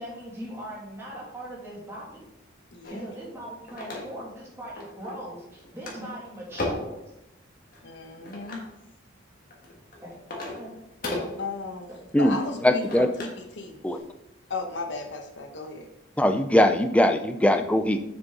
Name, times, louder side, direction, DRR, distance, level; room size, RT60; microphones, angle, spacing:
voice 1, 0.0-2.2 2.9-7.0 10.0-10.2 10.5-10.7, right 1 dB, 15° right, -6 dB, 2.5 m, -40 dB
voice 2, 2.7-3.1 7.8-8.6 11.4-11.9 12.2-13.8 14.5-15.9, left 3 dB, 65° left, 5 dB, 1.1 m, -35 dB
sound 1, 2.8-4.4 4.8-5.3 5.6-7.0 7.7-8.7 9.3-13.5 13.8-14.0, left 1 dB, 45° left, 1.7 m, -36 dB
voice 3, 12.6-13.1 13.8-14.0 16.2-18.0, left 1 dB, 5° left, 7 dB, 0.4 m, -21 dB
7.3 x 6.5 x 3.9 m, 0.88 s
head